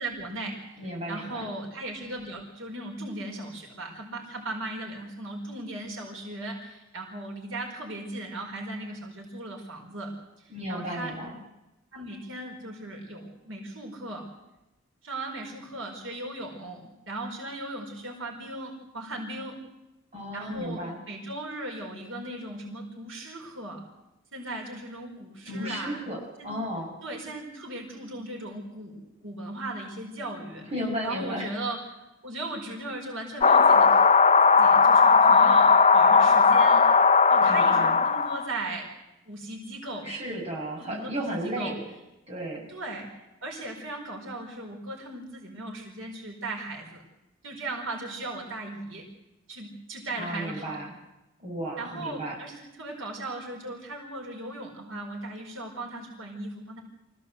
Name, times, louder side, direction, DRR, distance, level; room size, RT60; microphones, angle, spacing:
voice 1, 0.0-0.8 1.1-11.1 11.9-14.3 15.0-19.6 20.3-23.9 24.3-26.1 26.4-26.5 27.0-30.7 31.0-31.8 32.2-34.0 34.4-36.9 37.3-38.9 39.2-40.1 40.8-41.7 42.7-43.1 43.4-47.0 47.4-49.0 49.5-50.8 51.8-56.8, right 2 dB, 80° right, 1 dB, 4.8 m, -37 dB
voice 2, 0.8-1.5 10.5-11.4 20.1-21.0 25.5-26.9 30.6-31.5 37.4-38.0 40.0-41.8 42.3-42.7 50.2-50.9 51.4-52.4, equal, 30° right, -2 dB, 6.9 m, -34 dB
sound 1, 33.4-38.5, left 5 dB, 35° left, 0.9 m, -18 dB
25.0 x 16.5 x 8.0 m, 0.96 s
head